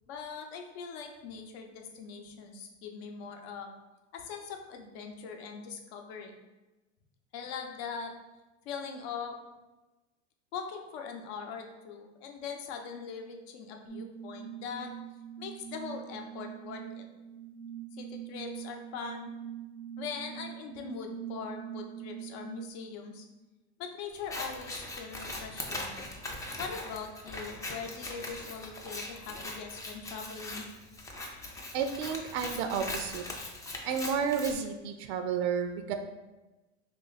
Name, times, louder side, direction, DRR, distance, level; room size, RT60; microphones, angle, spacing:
voice 1, 0.1-3.7 4.1-6.3 7.3-8.1 8.6-9.4 10.5-14.9 15.4-17.0 17.9-19.3 20.0-23.3 23.8-26.0 26.6-30.6, left 6 dB, 65° left, 3 dB, 0.7 m, -41 dB
sound 1, 13.9-22.7, right 9 dB, 85° left, 1.0 m, -43 dB
Scissors, 24.1-34.5, left 2 dB, 10° left, 0.3 m, -40 dB
voice 2, 31.7-33.2 33.8-35.9, right 6 dB, 65° right, 7 dB, 0.5 m, -31 dB
3.2 x 2.5 x 4.0 m, 1.1 s
supercardioid pair, 115°, 35 cm